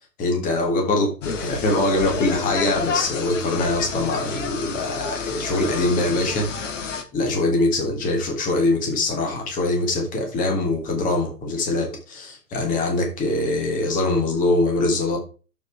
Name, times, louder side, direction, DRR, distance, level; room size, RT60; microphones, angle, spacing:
voice 1, 0.2-6.5 7.1-15.2, left 2 dB, 15° left, 1.9 m, -23 dB
sound 1, 1.2-7.0, left 5 dB, 50° left, 1.5 m, -30 dB
7.2 x 6.2 x 4.7 m
figure-of-eight pair, 120°, 47 cm